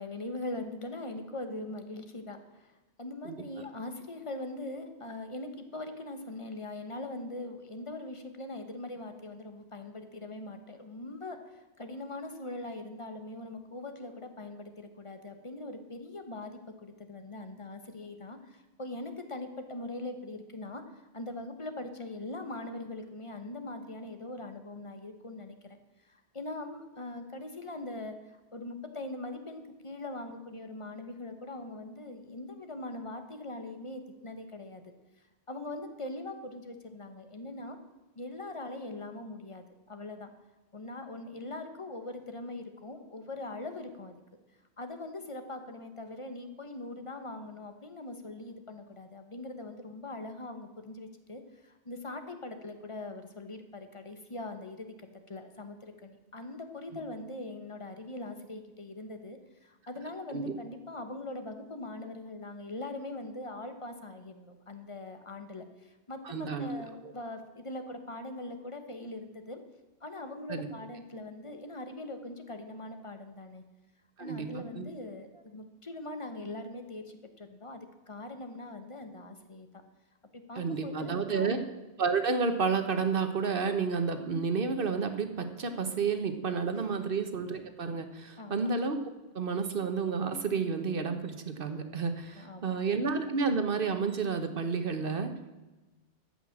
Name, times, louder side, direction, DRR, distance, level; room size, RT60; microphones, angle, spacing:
voice 1, 0.0-34.9 35.5-37.8 38.1-40.3 40.7-44.1 44.8-54.9 55.3-69.6 70.0-73.6 74.2-77.8 78.1-79.7 80.5-81.7 86.7-87.1 88.4-88.7 92.3-93.0, left 2 dB, 30° left, 7 dB, 1.1 m, -42 dB
voice 2, 66.2-66.7 67.0-67.1 70.5-70.7 74.2-74.8 80.6-81.6 82.0-89.0 89.3-95.3, right 5 dB, 55° right, 8 dB, 1.2 m, -31 dB
13.5 x 5.8 x 7.2 m, 1.1 s
omnidirectional pair, 1.2 m